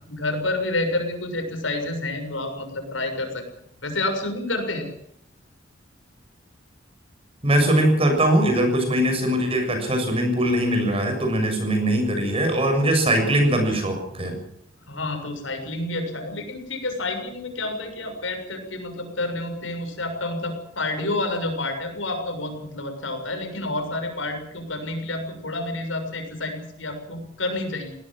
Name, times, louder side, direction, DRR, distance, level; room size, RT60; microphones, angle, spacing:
voice 1, 0.1-3.4 3.8-4.9 14.9-27.9, left 2 dB, 90° left, 5 dB, 6.8 m, -29 dB
voice 2, 7.4-14.4, right 1 dB, 30° right, 5 dB, 7.2 m, -21 dB
21.5 x 18.0 x 7.7 m, 0.71 s
head